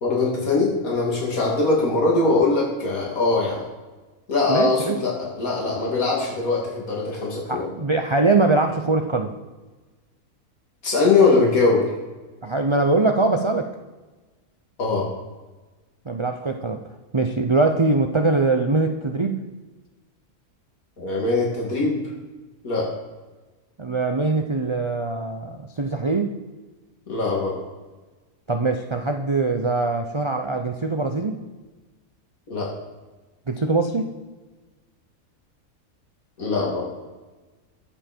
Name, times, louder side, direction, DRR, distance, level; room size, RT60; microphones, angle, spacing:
voice 1, 0.0-3.6 4.3-7.7 10.8-11.9 14.8-15.1 21.0-22.0 22.6-22.9 27.1-27.6 32.5-32.7 36.4-36.9, left 3 dB, 70° left, -3 dB, 3.2 m, -21 dB
voice 2, 4.5-5.0 7.5-9.3 12.4-13.7 16.1-16.8 17.1-19.4 23.8-26.3 28.5-31.4 33.5-34.1, right 3 dB, 30° right, 5 dB, 0.5 m, -22 dB
21.5 x 7.3 x 4.5 m, 1.2 s
omnidirectional pair, 1.6 m